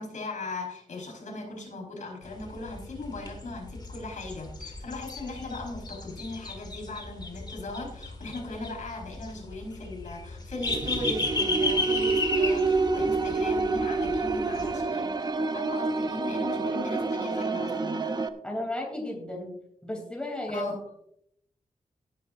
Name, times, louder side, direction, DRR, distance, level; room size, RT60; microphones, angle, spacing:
voice 1, 0.0-15.1 15.5-18.3 20.5-20.8, left 2 dB, 70° left, 0 dB, 4.8 m, -38 dB
sound 1, 2.2-14.7, left 3 dB, 30° left, 2.0 m, -35 dB
sound 2, 10.7-18.3, right 3 dB, 30° right, 0.7 m, -28 dB
voice 2, 18.4-19.5 19.8-20.7, left 1 dB, 5° left, 0 dB, 3.1 m, -33 dB
17.0 x 10.5 x 2.6 m, 0.72 s
wide cardioid pair, 170°, 13 cm